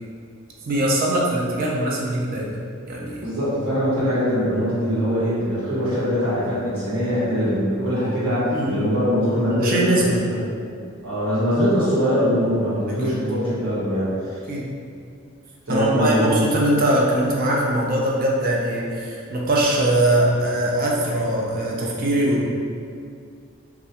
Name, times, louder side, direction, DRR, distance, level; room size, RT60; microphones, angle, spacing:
voice 1, 0.7-2.5 2.9-3.2 8.5-8.9 9.5-10.2 13.0-13.1 14.5-14.7 15.7-22.4, right 1 dB, 45° right, -3 dB, 0.4 m, -21 dB
voice 2, 3.2-10.5 11.0-14.4 15.7-16.4, equal, 75° right, -12 dB, 1.2 m, -22 dB
2.3 x 2.2 x 2.8 m, 2.3 s
head